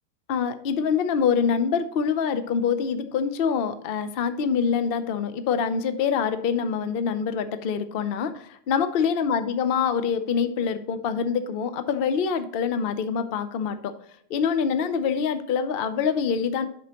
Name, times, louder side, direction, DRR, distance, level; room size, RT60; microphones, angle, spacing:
voice 1, 0.3-13.9 14.3-16.7, left 6 dB, 55° left, 10 dB, 0.6 m, -25 dB
8.3 x 6.2 x 2.9 m, 0.69 s
omnidirectional pair, 1.7 m